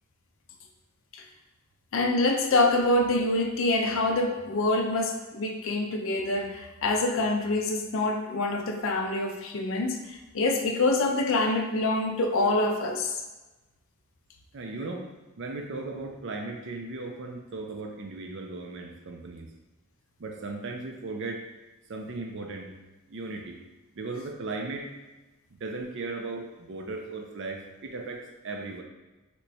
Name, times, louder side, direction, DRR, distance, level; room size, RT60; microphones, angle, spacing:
voice 1, 1.9-13.2, left 2 dB, 60° left, 4 dB, 0.4 m, -26 dB
voice 2, 14.5-15.1 15.4-19.5 20.2-21.4 21.9-22.7 23.1-23.6 24.0-24.9 25.6-28.8, right 3 dB, 55° right, 3 dB, 0.4 m, -36 dB
2.9 x 2.2 x 4.0 m, 1.1 s
head